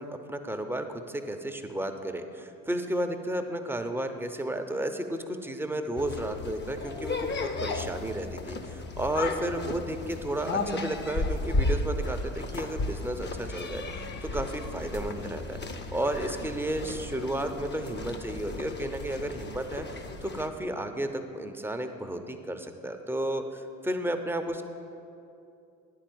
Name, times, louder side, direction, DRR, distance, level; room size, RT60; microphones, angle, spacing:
voice 1, 0.0-15.6 15.9-24.6, right 1 dB, 5° right, 6 dB, 0.7 m, -33 dB
sound 1, 5.9-20.5, left 2 dB, 25° left, 0.8 m, -34 dB
10.0 x 4.6 x 7.8 m, 2.6 s
hypercardioid pair, 65°, 41 cm